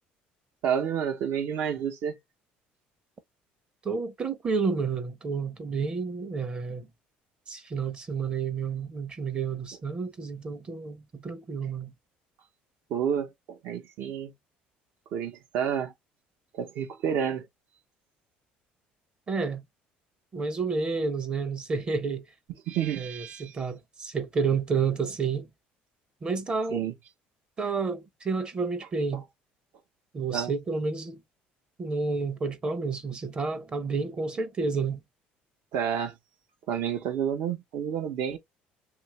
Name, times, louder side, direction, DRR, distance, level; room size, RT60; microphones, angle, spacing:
voice 1, 0.6-2.2 12.9-14.3 15.1-15.9 16.5-17.5 22.7-23.5 26.7-26.9 30.3-30.5 35.7-36.1 36.7-38.4, right 8 dB, 70° right, 0.7 m, -29 dB
voice 2, 3.8-6.9 7.5-11.9 19.3-19.6 20.3-22.3 23.0-25.5 26.2-26.8 27.6-29.3 30.1-31.2 31.8-35.0, right 4 dB, 30° right, 0.6 m, -30 dB
2.8 x 2.4 x 3.0 m
cardioid pair, 115°, 4 cm